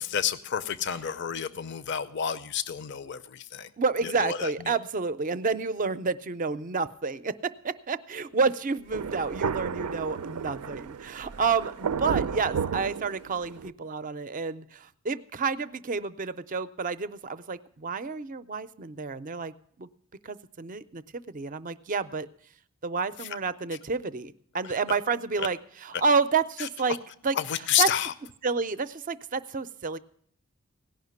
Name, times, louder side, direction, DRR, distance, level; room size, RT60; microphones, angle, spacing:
voice 1, 0.0-3.7 4.0-4.7 23.2-23.4 25.4-25.5 26.6-27.0 27.3-28.1, left 9 dB, 50° left, 13 dB, 0.5 m, -30 dB
voice 2, 3.8-19.5 19.8-19.9 20.2-22.3 22.8-27.0 27.2-27.4 27.8-27.9 28.4-30.0, right 4 dB, 35° right, 13 dB, 0.5 m, -29 dB
Thunder, 8.9-13.7, right 6 dB, 85° right, 0.4 m, -32 dB
17.0 x 5.8 x 9.3 m, 0.64 s
head